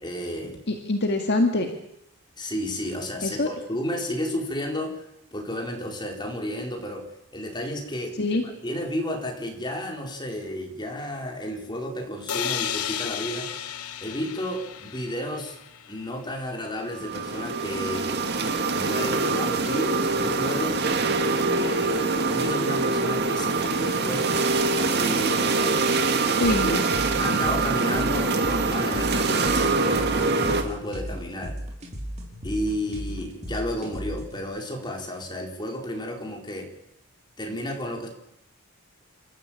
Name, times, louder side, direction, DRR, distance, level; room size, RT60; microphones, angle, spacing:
voice 1, 0.0-0.6 2.4-5.1 5.3-7.1 7.3-13.5 14.0-15.6 15.9-18.1 18.7-20.8 21.5-24.5 24.8-25.9 26.6-26.8 27.2-31.6 32.4-36.7 37.4-38.1, equal, 20° left, 1 dB, 4.4 m, -32 dB
voice 2, 0.7-1.7 3.2-3.5 8.2-8.4 26.4-26.9, left 2 dB, 50° left, 4 dB, 2.0 m, -24 dB
sound 1, 12.3-16.1, left 9 dB, 80° left, 1.2 m, -33 dB
sound 2, 16.9-30.6, right 3 dB, 50° right, 2.2 m, -24 dB
sound 3, 26.4-34.4, equal, 30° right, 4.8 m, -36 dB
28.5 x 13.5 x 8.8 m, 0.81 s
head